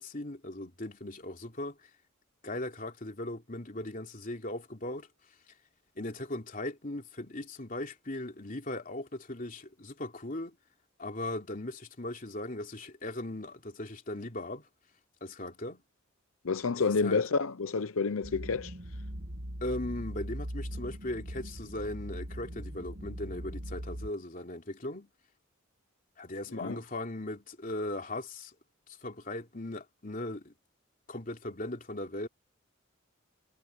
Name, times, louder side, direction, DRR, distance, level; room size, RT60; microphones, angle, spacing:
voice 1, 0.0-1.9 2.4-5.1 6.0-10.6 11.0-14.7 15.2-15.8 16.7-17.2 19.6-25.1 26.2-28.5 29.0-30.5 31.1-32.3, left 1 dB, 40° left, 3.1 m, -38 dB
voice 2, 16.4-18.7 26.6-26.8, left 4 dB, 90° left, 0.7 m, -29 dB
sound 1, 18.2-24.1, equal, 55° right, 1.9 m, -40 dB
head